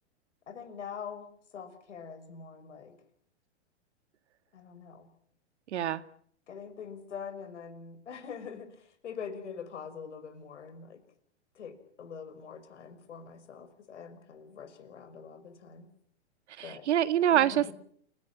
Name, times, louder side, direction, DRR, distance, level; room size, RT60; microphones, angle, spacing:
voice 1, 0.5-1.3 1.5-3.0 4.5-5.1 6.5-11.0 11.6-15.9 16.6-16.9 17.3-17.7, left 6 dB, 80° left, 10 dB, 5.9 m, -44 dB
voice 2, 5.7-6.0 16.6-17.7, right 11 dB, 70° right, 13 dB, 1.9 m, -25 dB
28.5 x 17.0 x 9.1 m, 0.64 s
hypercardioid pair, 120°, 35 cm